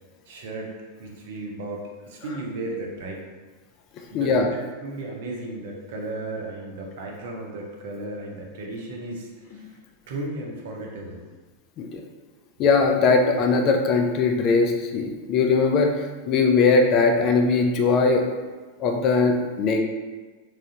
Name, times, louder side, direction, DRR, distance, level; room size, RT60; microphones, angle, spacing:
voice 1, 0.3-0.7 1.0-3.2 4.1-9.7 10.1-11.2, right 2 dB, 55° right, -1 dB, 0.7 m, -35 dB
voice 2, 4.0-4.5 11.8-12.0 12.6-18.3 18.8-19.8, left 4 dB, 35° left, 4 dB, 0.4 m, -20 dB
3.6 x 3.2 x 2.7 m, 1.3 s
figure-of-eight pair, 90°, 0 cm